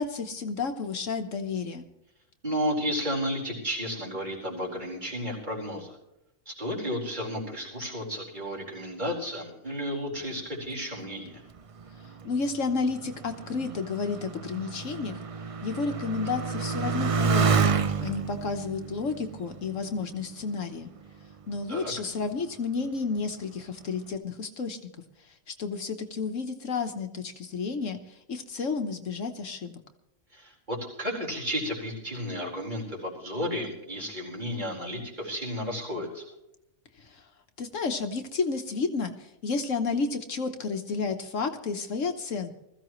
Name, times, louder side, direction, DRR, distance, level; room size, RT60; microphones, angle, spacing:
voice 1, 0.0-1.9 12.2-15.2 15.6-17.7 18.0-20.9 21.5-24.8 25.6-29.8 37.0-37.2 37.6-42.5, left 4 dB, 65° left, 6 dB, 1.4 m, -31 dB
voice 2, 2.4-6.0 6.5-11.4 17.9-18.0 21.7-21.9 30.3-36.2, equal, 35° right, -3 dB, 4.4 m, -33 dB
Motorcycle, 11.6-20.6 21.3-21.9, right 5 dB, 55° right, 0.3 m, -30 dB
21.0 x 14.5 x 3.1 m, 0.85 s
omnidirectional pair, 1.4 m